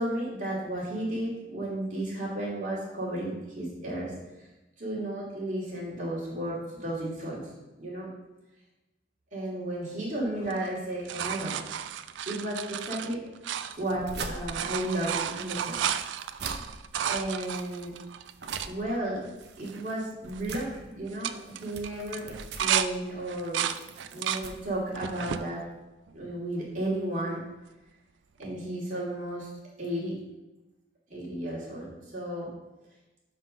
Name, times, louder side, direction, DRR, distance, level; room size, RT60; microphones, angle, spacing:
voice 1, 0.0-4.5 4.8-7.4 7.8-8.1 9.3-11.6 12.3-13.3 13.8-15.8 17.0-18.0 18.6-19.2 19.6-23.7 24.1-25.6 26.1-27.4 28.4-29.5 29.8-30.2 31.1-32.5, right 1 dB, 40° right, -6 dB, 2.8 m, -33 dB
sound 1, 10.4-14.1 14.3-18.7 19.3-19.4 19.6-20.0 20.3-20.7 21.1-22.9 23.3-24.5 24.9-25.5 26.1-26.8 28.4-28.5, right 9 dB, 80° right, 0.4 m, -33 dB
sound 2, 13.7-25.5, right 3 dB, 65° right, 0.7 m, -44 dB
5.5 x 5.4 x 6.3 m, 1.1 s
head